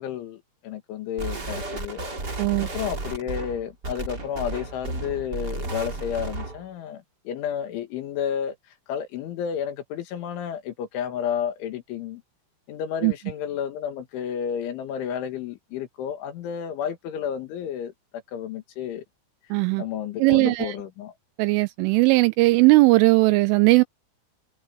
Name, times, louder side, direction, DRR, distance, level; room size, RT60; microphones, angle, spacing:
voice 1, 0.0-2.0 2.6-8.6 8.9-12.2 12.7-19.0 19.8-21.1, left 8 dB, 70° left, 4.1 m, -31 dB
sound 1, 1.2-6.6, right 2 dB, 20° right, 3.3 m, -33 dB
voice 2, 19.5-19.8 20.2-20.7 21.4-23.8, right 23 dB, 85° right, 2.9 m, -18 dB
omnidirectional pair, 6.0 m